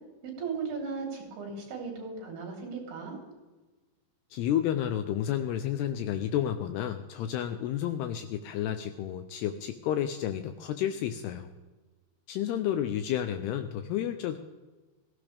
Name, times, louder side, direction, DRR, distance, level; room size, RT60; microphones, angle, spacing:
voice 1, 0.2-3.2, right 5 dB, 60° right, 0 dB, 5.3 m, -36 dB
voice 2, 4.3-11.5 12.3-14.4, left 10 dB, 85° left, 8 dB, 2.3 m, -31 dB
17.0 x 15.5 x 3.4 m, 1.2 s
omnidirectional pair, 5.4 m